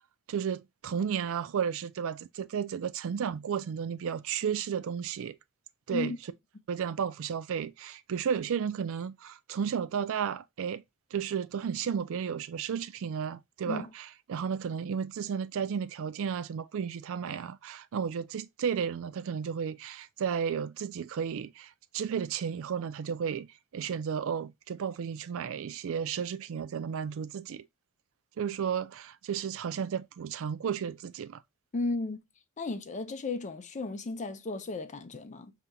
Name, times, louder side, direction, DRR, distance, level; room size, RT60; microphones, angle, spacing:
voice 1, 0.3-5.4 5.9-6.1 6.7-10.8 11.1-23.5 23.7-27.7 28.4-31.4, right 7 dB, 65° right, 0.4 m, -33 dB
voice 2, 31.7-32.2 32.6-35.5, left 3 dB, 35° left, 0.5 m, -34 dB
5.2 x 2.9 x 2.2 m
head